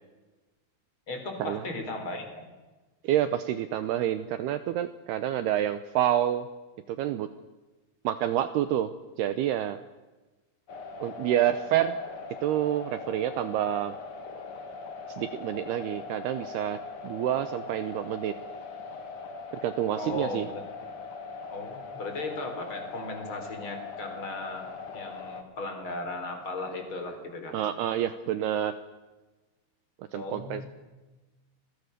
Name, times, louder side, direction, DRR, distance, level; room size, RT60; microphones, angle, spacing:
voice 1, 1.1-2.3 19.9-20.6 21.5-24.7 24.9-27.6 30.1-30.7, left 2 dB, 25° left, 5 dB, 4.4 m, -36 dB
voice 2, 3.0-6.5 6.9-7.3 8.0-9.8 11.0-12.0 12.4-13.9 15.2-16.8 17.0-18.3 19.5-20.5 27.5-28.7 30.1-30.6, right 11 dB, 80° right, 11 dB, 2.4 m, -28 dB
sound 1, 10.7-25.4, left 4 dB, 60° left, 1.4 m, -41 dB
28.5 x 21.5 x 6.7 m, 1.2 s
omnidirectional pair, 5.6 m